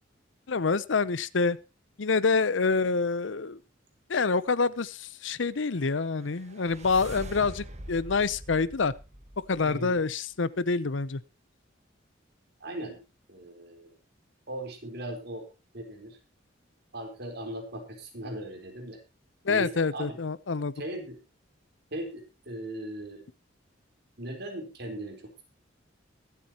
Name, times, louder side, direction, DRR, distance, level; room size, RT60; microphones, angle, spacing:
voice 1, 0.5-1.6 2.0-3.6 4.1-8.9 9.5-11.2 19.4-20.7, left 4 dB, 70° left, 18 dB, 0.7 m, -27 dB
sound 1, 5.8-10.0, right 1 dB, 35° right, 1.6 m, -44 dB
voice 2, 9.6-10.0 12.6-13.0 13.3-13.9 14.5-15.5 15.7-16.2 16.9-19.0 19.5-20.2 20.7-21.2 21.9-23.3 24.2-25.4, right 1 dB, 55° right, 3 dB, 4.2 m, -38 dB
22.5 x 8.4 x 3.0 m, 0.28 s
head